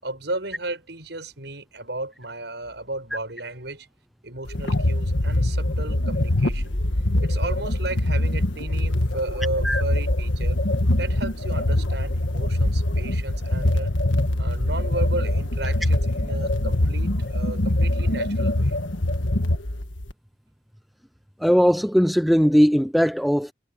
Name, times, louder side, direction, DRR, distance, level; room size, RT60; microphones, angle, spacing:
voice 1, 0.0-3.9 4.2-6.8 7.2-10.6 11.0-13.9 14.4-18.8, right 2 dB, 65° right, 7.3 m, -34 dB
sound 1, 4.5-20.1, left 1 dB, 90° left, 1.6 m, -23 dB
voice 2, 21.4-23.5, equal, ahead, 0.6 m, -19 dB
head